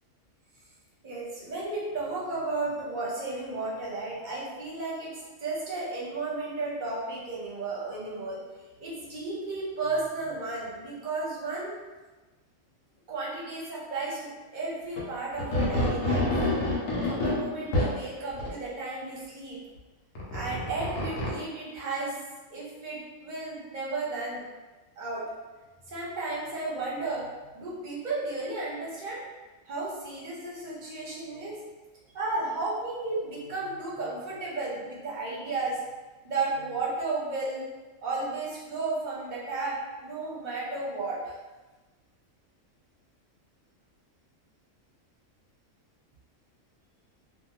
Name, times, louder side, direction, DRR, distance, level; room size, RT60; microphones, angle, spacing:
voice 1, 1.0-8.4 8.8-11.8 13.1-16.3 17.0-19.6 20.3-22.1 22.5-24.4 25.0-25.2 25.9-27.3 27.5-29.2 29.7-31.6 32.1-35.8 36.2-37.7 38.0-41.4, right 3 dB, 45° right, -5 dB, 0.8 m, -33 dB
sound 1, 15.0-15.1 15.4-17.9 18.3-18.5 20.2-21.3, left 1 dB, 85° left, 1.1 m, -27 dB
2.6 x 2.5 x 2.9 m, 1.2 s
omnidirectional pair, 1.4 m